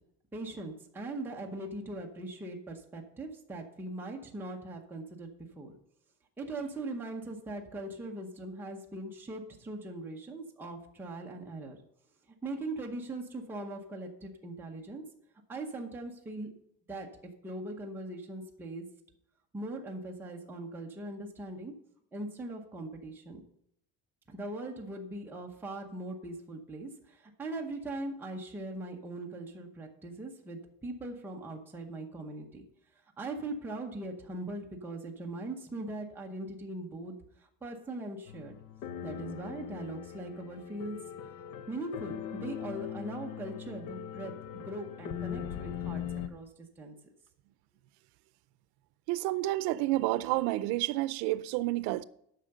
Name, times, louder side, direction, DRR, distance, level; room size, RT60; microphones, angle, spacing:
voice 1, 0.3-5.3 5.6-5.7 6.4-11.8 12.4-15.0 15.5-16.5 16.9-17.1 17.4-18.8 19.5-21.7 22.1-23.4 24.3-32.6 33.2-38.5 39.0-41.0 41.7-46.0 46.3-46.9, right 2 dB, 5° right, 0.8 m, -40 dB
sound 1, 38.3-46.3, left 9 dB, 70° left, 0.8 m, -40 dB
voice 2, 49.1-52.0, right 17 dB, 90° right, 0.6 m, -30 dB
8.9 x 5.8 x 6.6 m
cardioid pair, 165°, 37 cm